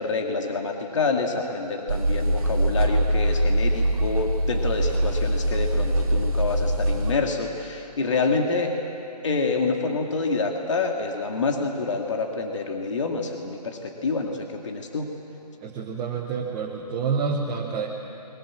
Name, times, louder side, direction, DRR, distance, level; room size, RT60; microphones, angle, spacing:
voice 1, 0.0-8.7 9.2-15.1, left 4 dB, 45° left, 2 dB, 2.4 m, -27 dB
sound 1, 1.9-7.1, right 1 dB, 55° right, 2.1 m, -23 dB
voice 2, 15.6-17.9, right 5 dB, 5° right, -4 dB, 0.7 m, -28 dB
29.0 x 22.0 x 7.5 m, 2.7 s
hypercardioid pair, 165°, 21 cm